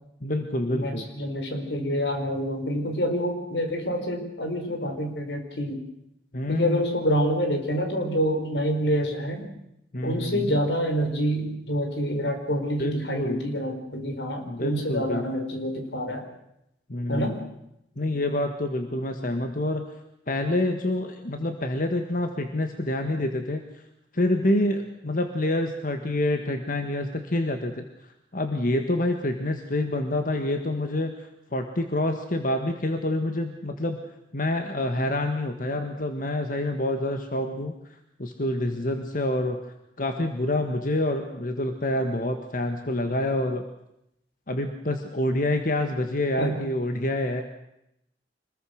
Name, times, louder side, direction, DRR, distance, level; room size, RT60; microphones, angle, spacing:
voice 1, 0.2-1.1 6.3-6.8 9.9-10.6 12.8-13.4 14.5-15.3 16.9-17.4 18.0-19.8 20.3-23.8 24.1-34.0 34.3-37.7 38.2-39.6 40.0-43.6 44.5-47.4, left 1 dB, 50° left, 6 dB, 1.7 m, -27 dB
voice 2, 0.7-5.8 6.5-9.5 10.0-16.3 17.1-17.4 46.4-46.7, equal, 80° left, 5 dB, 4.6 m, -27 dB
26.0 x 20.5 x 6.5 m, 0.82 s
head